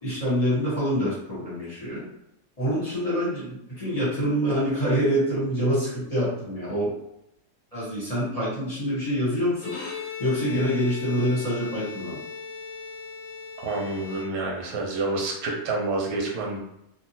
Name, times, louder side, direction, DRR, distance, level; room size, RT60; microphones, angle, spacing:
voice 1, 0.0-2.1 2.6-6.9 7.7-9.8 10.2-12.2, equal, 25° left, -10 dB, 1.3 m, -26 dB
Bowed string instrument, 9.5-14.8, left 5 dB, 70° left, 1.1 m, -38 dB
voice 2, 13.6-16.6, right 2 dB, 90° right, -1 dB, 1.3 m, -28 dB
2.8 x 2.7 x 2.8 m, 0.80 s
omnidirectional pair, 1.7 m